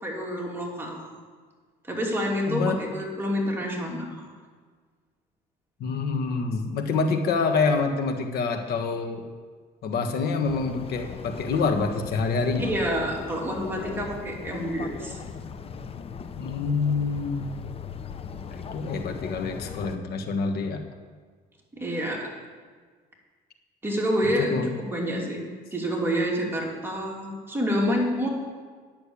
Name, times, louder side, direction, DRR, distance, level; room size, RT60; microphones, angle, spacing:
voice 1, 0.0-1.0 1.8-4.3 12.6-15.2 21.7-22.3 23.8-24.6 24.8-28.3, equal, 15° right, -2 dB, 2.9 m, -28 dB
voice 2, 2.5-2.8 5.8-9.2 9.8-12.7 16.4-17.5 18.5-20.8 24.4-24.7, left 4 dB, 70° left, 5 dB, 1.6 m, -26 dB
sound 1, 10.5-20.0, left 6 dB, 35° left, 0.7 m, -39 dB
10.5 x 6.9 x 8.4 m, 1.6 s
cardioid pair, 110°, 17 cm